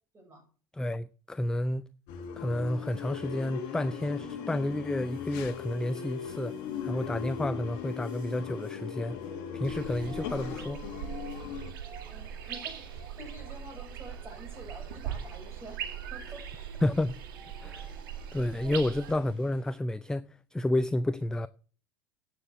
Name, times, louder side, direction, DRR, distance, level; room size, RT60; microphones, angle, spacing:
voice 1, 0.7-1.9 2.4-6.5 6.8-9.2 9.5-10.8 16.8-17.2 17.6-17.9 18.3-21.5, left 1 dB, 5° left, 0.4 m, -30 dB
sound 1, 2.1-11.7, left 8 dB, 60° left, 1.5 m, -38 dB
sound 2, 2.6-19.8, right 5 dB, 45° right, 3.7 m, -56 dB
sound 3, 9.6-19.1, right 8 dB, 75° right, 2.1 m, -40 dB
voice 2, 12.1-15.8 16.1-16.4 18.6-18.8, right 2 dB, 20° right, 6.0 m, -48 dB
9.9 x 6.7 x 8.0 m
hypercardioid pair, 85°, 12 cm